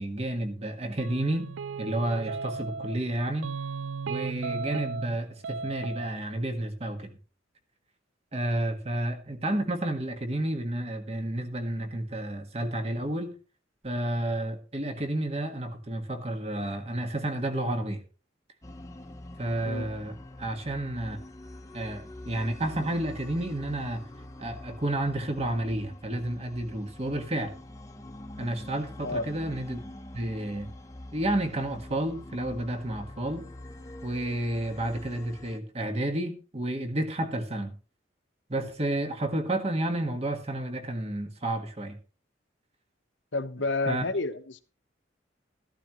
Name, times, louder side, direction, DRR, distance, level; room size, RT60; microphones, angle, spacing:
voice 1, 0.0-1.5 1.8-3.5 4.1-7.2 8.3-13.3 13.8-18.0 19.4-21.2 21.7-24.0 24.4-27.5 28.4-29.8 30.1-30.7 31.1-33.5 34.0-37.7 38.5-42.0 43.8-44.0, right 1 dB, 35° right, 6 dB, 1.6 m, -31 dB
sound 1, 1.0-3.0 3.4-5.2 5.4-6.1, right 5 dB, 85° right, 0.4 m, -35 dB
sound 2, 18.6-35.6, left 1 dB, 15° left, 1.0 m, -45 dB
voice 2, 43.3-44.6, left 3 dB, 80° left, 9 dB, 1.1 m, -30 dB
14.0 x 11.5 x 3.1 m, 0.34 s
head